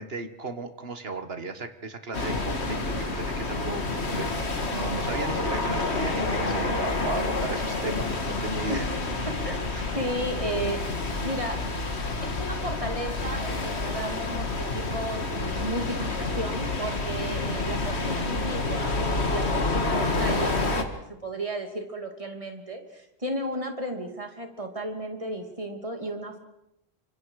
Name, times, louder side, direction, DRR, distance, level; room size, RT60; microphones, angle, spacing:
voice 1, 0.0-4.3 4.7-8.9 9.7-9.9 17.3-17.6, right 3 dB, 65° right, 9 dB, 1.8 m, -35 dB
sound 1, 2.1-20.8, left 2 dB, 85° left, 2.3 m, -28 dB
voice 2, 9.3-9.6 9.9-10.8 11.2-11.6 12.2-26.4, right 1 dB, 30° right, 4 dB, 2.9 m, -34 dB
28.5 x 25.0 x 4.9 m, 0.84 s
omnidirectional pair, 1.1 m